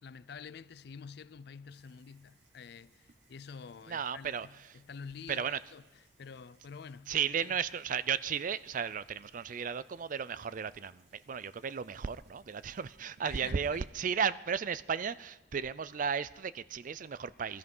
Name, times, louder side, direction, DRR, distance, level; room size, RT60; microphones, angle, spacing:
voice 1, 0.0-7.6 13.2-13.9, left 5 dB, 65° left, 0.4 m, -49 dB
sound 1, 1.7-14.1, right 2 dB, 75° right, 3.0 m, -69 dB
voice 2, 3.9-4.5 5.3-5.6 7.1-17.6, right 7 dB, 50° right, 0.4 m, -34 dB
19.5 x 13.5 x 5.5 m
head